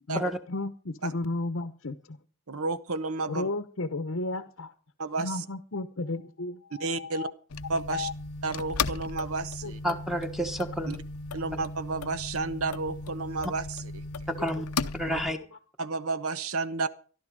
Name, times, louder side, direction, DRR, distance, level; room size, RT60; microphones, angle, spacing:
voice 1, 0.0-2.2 3.3-4.7 5.2-7.3 7.9-8.1 9.6-9.7 14.4-14.6 15.2-15.5, left 2 dB, 60° left, 9 dB, 0.9 m, -34 dB
voice 2, 2.5-3.5 5.0-5.3 6.8-7.3 7.7-8.1 8.4-9.8 10.9-11.0 11.3-14.0 15.1-15.2 15.8-16.9, right 3 dB, 75° right, 13 dB, 1.0 m, -31 dB
sound 1, 7.5-15.3, left 4 dB, 90° left, 0.7 m, -36 dB
voice 3, 9.8-11.0 14.3-14.7 14.9-15.4, equal, ahead, 6 dB, 1.1 m, -30 dB
14.5 x 12.5 x 5.2 m, 0.39 s
head